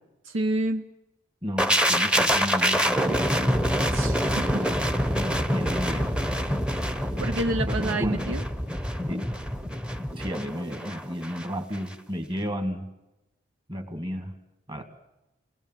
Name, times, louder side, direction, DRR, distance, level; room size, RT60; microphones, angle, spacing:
voice 1, 0.3-0.8 3.9-4.7 7.2-8.4, right 2 dB, 70° right, 8 dB, 0.8 m, -28 dB
voice 2, 1.4-3.3 5.1-6.1 7.7-8.3 9.1-9.2 10.1-12.9 13.7-14.4 14.7-14.8, equal, 25° right, 7 dB, 2.0 m, -33 dB
sound 1, 1.6-11.5 11.7-11.9, equal, 5° right, 0.9 m, -26 dB
29.0 x 20.0 x 7.5 m, 0.97 s
head